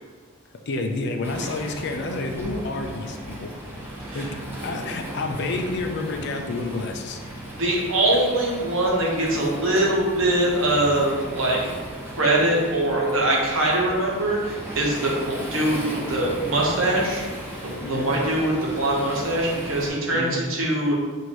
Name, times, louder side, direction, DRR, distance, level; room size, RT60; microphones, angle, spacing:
voice 1, 0.7-3.5 4.1-4.4 4.6-7.2 17.8-18.1 19.9-20.4, left 2 dB, 50° left, 4 dB, 0.4 m, -29 dB
Waves surf, 1.2-19.9, right 1 dB, 10° right, 0.7 m, -36 dB
voice 2, 7.5-11.6 12.2-17.2 17.6-21.0, right 1 dB, 65° right, -3 dB, 1.1 m, -23 dB
6.1 x 2.6 x 3.0 m, 1.5 s
head